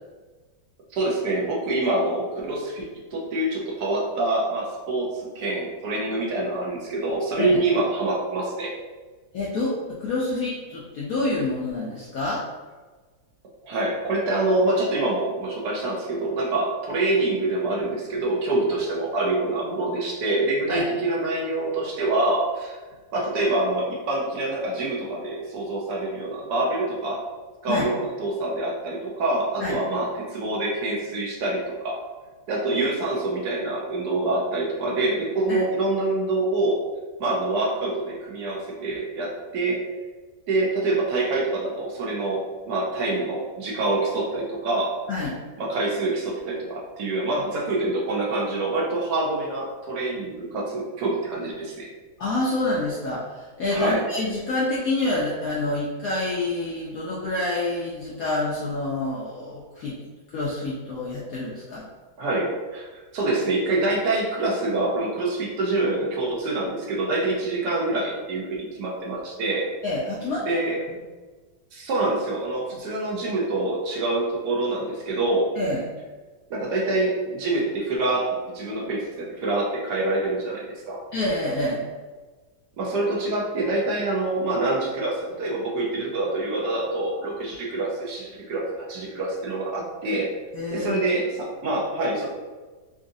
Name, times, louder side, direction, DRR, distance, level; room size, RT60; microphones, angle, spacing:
voice 1, 0.9-8.7 13.6-22.8 23.1-27.2 27.6-32.0 32.5-36.8 37.2-39.8 40.5-44.9 45.6-51.9 53.7-54.0 62.2-62.9 63.1-69.7 70.4-70.8 71.7-75.4 76.5-81.0 82.8-90.3 90.7-92.3, right 2 dB, 65° right, -3 dB, 1.1 m, -26 dB
voice 2, 9.3-12.4 20.7-20.9 27.7-27.8 29.6-29.8 35.5-35.7 45.1-45.4 52.2-60.0 60.3-61.8 69.8-70.6 72.7-72.8 75.6-75.8 81.1-81.8 90.5-91.2, left 2 dB, 75° left, -5 dB, 0.8 m, -27 dB
3.8 x 2.4 x 2.6 m, 1.3 s
omnidirectional pair, 2.1 m